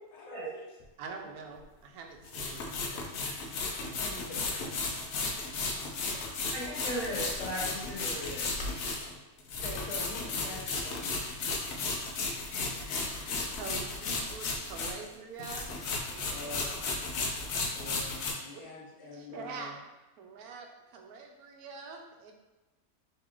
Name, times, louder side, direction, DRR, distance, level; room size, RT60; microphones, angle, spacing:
voice 1, 0.1-0.7 3.9-4.4 9.6-11.2 16.3-16.9 17.7-19.8, left 2 dB, 90° left, -3 dB, 1.5 m, -45 dB
sound 1, 0.8-0.9 2.2-15.1 15.4-18.3, left 3 dB, 70° left, 1.0 m, -34 dB
voice 2, 1.0-3.1 13.6-15.7 16.1-17.0 19.1-22.3, right 5 dB, 80° right, 2 dB, 1.1 m, -45 dB
voice 3, 6.5-8.4, equal, 55° left, -11 dB, 1.7 m, -37 dB
3.9 x 3.0 x 3.0 m, 1.1 s
omnidirectional pair, 1.6 m